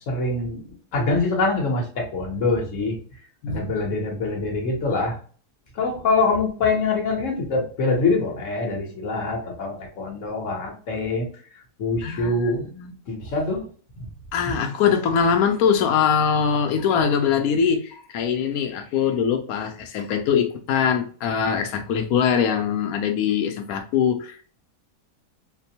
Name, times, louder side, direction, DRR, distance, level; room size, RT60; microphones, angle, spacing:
voice 1, 0.1-0.6 0.9-3.0 3.5-5.2 5.7-11.3 11.8-12.7 13.1-13.6 14.0-14.1, left 3 dB, 55° left, 1.3 m, -24 dB
voice 2, 12.0-12.9 14.3-24.5, left 7 dB, 70° left, 1.1 m, -22 dB
4.3 x 2.2 x 2.8 m
omnidirectional pair, 1.7 m